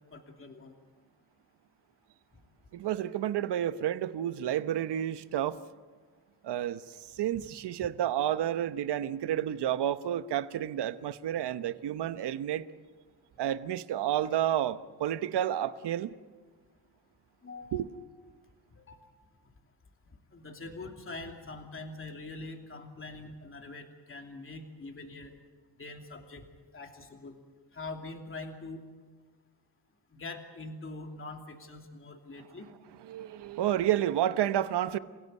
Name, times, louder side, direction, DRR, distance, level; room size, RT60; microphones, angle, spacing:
voice 1, 0.1-0.7 7.3-7.4 17.4-17.9 18.7-19.0 20.3-25.3 25.8-26.4 26.7-27.4 27.7-28.8 30.1-32.7, left 3 dB, 30° left, 2.9 m, -43 dB
voice 2, 2.7-5.6 6.4-12.7 13.4-16.1 17.7-17.9 33.0-35.0, right 11 dB, 70° right, 1.0 m, -30 dB
29.0 x 16.5 x 8.3 m
cardioid pair, 105°, 42 cm